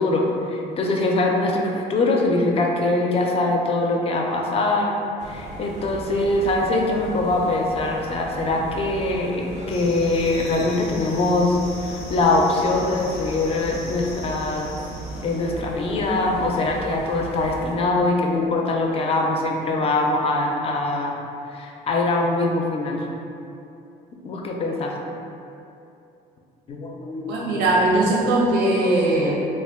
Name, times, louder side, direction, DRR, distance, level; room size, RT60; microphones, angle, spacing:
voice 1, 0.0-4.9 5.3-14.7 15.2-21.2 21.5-23.0 24.2-25.0 26.7-27.7, left 2 dB, 35° left, 0 dB, 0.4 m, -23 dB
sound 1, 5.2-17.8, right 2 dB, 40° right, 0.4 m, -37 dB
sound 2, 9.7-15.5, left 2 dB, 85° left, 0.6 m, -40 dB
voice 2, 27.3-29.3, right 2 dB, 90° right, -5 dB, 0.6 m, -19 dB
2.5 x 2.1 x 3.4 m, 2.7 s
cardioid pair, 110°, 17 cm